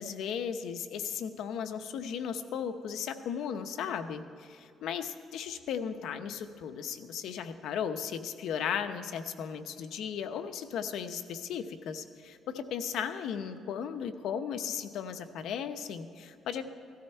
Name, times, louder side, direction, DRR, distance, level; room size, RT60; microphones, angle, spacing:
voice 1, 0.0-16.6, left 7 dB, 80° left, 9 dB, 0.8 m, -36 dB
16.0 x 13.5 x 4.5 m, 2.6 s
cardioid pair, 100°, 0 cm